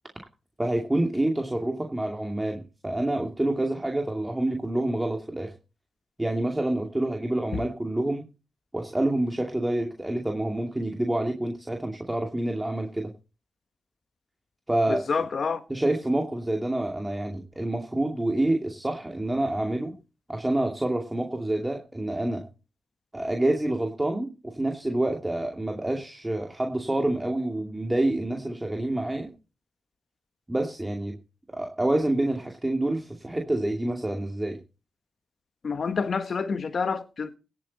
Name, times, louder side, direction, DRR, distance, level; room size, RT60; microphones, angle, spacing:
voice 1, 0.6-5.5 6.2-8.2 8.7-13.1 14.7-15.0 15.7-19.9 20.3-22.4 23.1-29.3 30.5-31.2 31.5-34.6, right 1 dB, 15° right, 2.5 m, -27 dB
voice 2, 14.9-15.6 35.6-37.4, left 5 dB, 55° left, 1.3 m, -28 dB
17.0 x 8.5 x 4.1 m
supercardioid pair, 55°, 0 cm